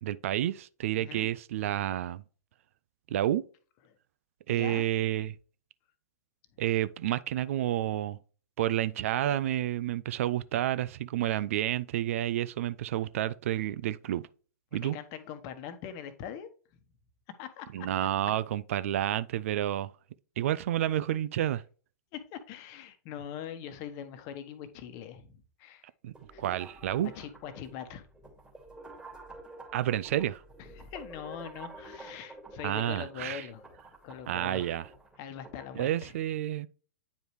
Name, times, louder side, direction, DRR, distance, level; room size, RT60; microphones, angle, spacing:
voice 1, 0.0-2.2 3.1-3.4 4.5-5.3 6.6-8.2 8.6-14.3 14.7-15.0 17.7-19.9 20.4-21.6 26.0-27.1 29.7-30.4 32.6-33.5 34.3-34.9 35.8-36.7, right 12 dB, 55° right, 0.4 m, -30 dB
voice 2, 1.0-1.3 4.5-4.8 14.8-16.5 17.4-17.9 22.1-25.9 26.3-26.4 27.0-28.1 30.6-33.6 34.0-34.8 35.2-36.1, left 9 dB, 40° left, 1.1 m, -42 dB
sound 1, 26.1-35.7, right 2 dB, 10° right, 2.5 m, -50 dB
9.3 x 5.0 x 3.1 m
figure-of-eight pair, 105°, 9 cm